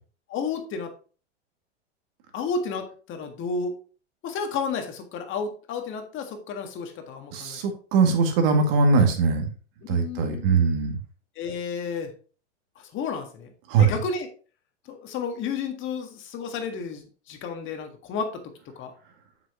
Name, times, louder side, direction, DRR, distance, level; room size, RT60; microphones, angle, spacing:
voice 1, 0.3-0.9 2.3-3.7 4.2-7.6 9.8-10.6 11.3-12.1 12.7-13.5 13.8-14.3 14.8-18.9, left 5 dB, 35° left, 5 dB, 1.7 m, -32 dB
voice 2, 7.3-9.5 9.9-11.0 13.7-14.0, right 4 dB, 55° right, 4 dB, 2.2 m, -21 dB
7.7 x 6.1 x 2.9 m, 0.38 s
hypercardioid pair, 110°, 36 cm